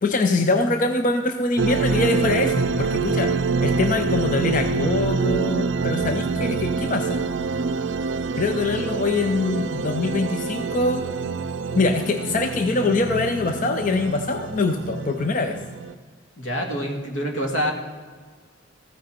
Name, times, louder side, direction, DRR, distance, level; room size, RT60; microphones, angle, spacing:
voice 1, 0.0-3.3 3.6-7.2 8.4-11.0 11.7-15.6, left 3 dB, 40° left, 7 dB, 0.6 m, -23 dB
sound 1, 1.6-15.9, right 4 dB, 70° right, 0.4 m, -26 dB
voice 2, 16.4-17.7, equal, 85° left, 2 dB, 2.1 m, -26 dB
14.5 x 9.0 x 4.4 m, 1.5 s
head